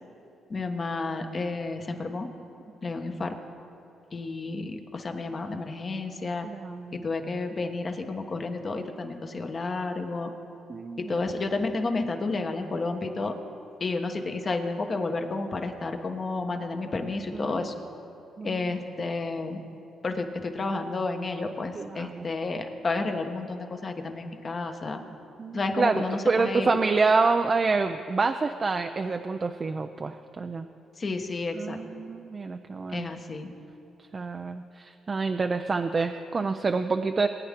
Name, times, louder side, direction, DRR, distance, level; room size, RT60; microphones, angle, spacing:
voice 1, 0.5-2.3 2.8-3.3 4.1-6.5 7.0-10.3 11.0-13.3 13.8-17.7 18.4-19.6 20.0-25.0 25.5-26.7 31.0-31.8 32.9-33.5, left 3 dB, 40° left, 5 dB, 1.2 m, -31 dB
voice 2, 6.4-7.1 10.7-11.2 17.3-17.7 18.4-18.7 21.7-22.3 25.4-30.7 31.5-33.1 34.1-37.3, right 4 dB, 40° right, 6 dB, 0.5 m, -27 dB
20.0 x 9.2 x 3.7 m, 2.9 s
cardioid pair, 70°, 0 cm